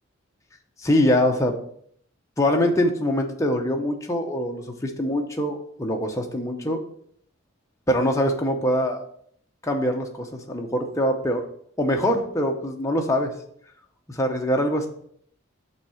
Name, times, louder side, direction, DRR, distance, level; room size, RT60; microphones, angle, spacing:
voice 1, 0.8-1.6 2.4-6.8 7.9-9.0 9.6-11.4 11.8-13.3 14.1-14.9, equal, 15° left, 2 dB, 0.7 m, -23 dB
6.0 x 3.6 x 5.5 m, 0.65 s
head